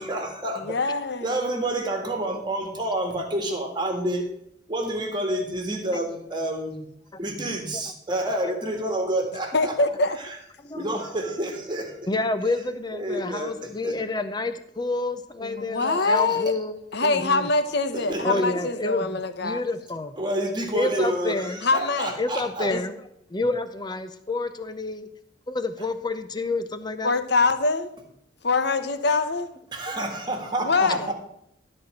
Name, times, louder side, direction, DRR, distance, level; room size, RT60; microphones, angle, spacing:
voice 1, 0.0-0.8 1.2-4.4 4.7-6.9 7.2-9.8 10.2-10.4 10.7-12.1 12.9-14.0 15.8-16.4 17.9-18.6 20.2-22.7 29.7-31.1, right 1 dB, 25° right, 1.7 m, -29 dB
voice 2, 0.6-1.3 9.5-10.2 15.4-16.5 16.9-19.6 21.6-22.2 22.7-22.8 27.0-27.9 28.4-29.5 30.6-31.1, left 3 dB, 55° left, 0.8 m, -24 dB
voice 3, 12.1-17.5 18.2-20.1 20.7-21.6 22.2-23.0 23.3-25.1 25.5-27.1, left 2 dB, 20° left, 0.6 m, -29 dB
13.0 x 4.3 x 7.5 m
head